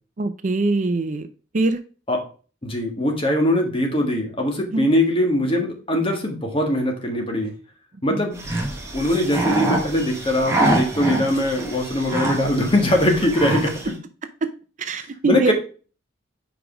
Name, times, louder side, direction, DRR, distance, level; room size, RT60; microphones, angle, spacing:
voice 1, 0.2-1.3 1.5-1.8 4.7-4.9 14.8-15.5, right 3 dB, 40° right, 10 dB, 0.5 m, -22 dB
voice 2, 2.6-7.5 8.0-8.4 8.9-13.9 15.2-15.5, left 1 dB, 30° left, 2 dB, 1.5 m, -21 dB
sound 1, 8.3-13.9, right 1 dB, 15° right, 1.6 m, -26 dB
5.0 x 5.0 x 4.9 m, 0.37 s
head